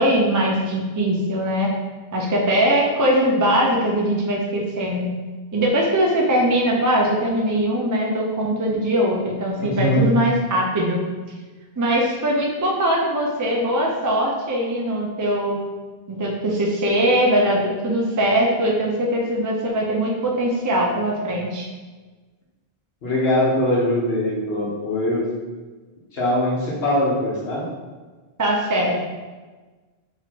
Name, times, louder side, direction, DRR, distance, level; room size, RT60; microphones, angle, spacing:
voice 1, 0.0-1.7 2.1-5.1 5.5-11.0 11.8-15.6 16.1-21.7 28.4-29.0, equal, 30° right, -2 dB, 0.4 m, -21 dB
voice 2, 9.6-10.1 23.0-25.3 26.1-27.6, left 1 dB, 70° left, -4 dB, 1.2 m, -21 dB
4.2 x 3.1 x 2.9 m, 1.3 s
omnidirectional pair, 1.1 m